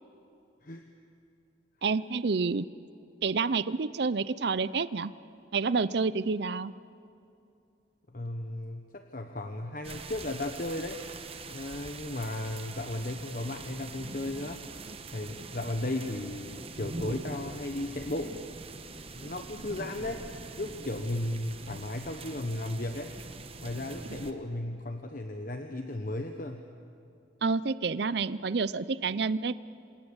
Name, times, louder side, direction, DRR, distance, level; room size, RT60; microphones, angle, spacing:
voice 1, 1.8-2.7 3.2-5.1 5.5-6.7 27.4-29.5, right 4 dB, 60° right, 16 dB, 0.5 m, -28 dB
voice 2, 8.1-11.0 11.5-14.6 15.1-18.4 19.1-20.2 20.5-23.2 23.6-26.7, left 1 dB, 45° left, 5 dB, 1.1 m, -35 dB
sound 1, 9.8-24.3, right 3 dB, 30° right, 1.1 m, -43 dB
27.0 x 26.0 x 7.2 m, 2.6 s
head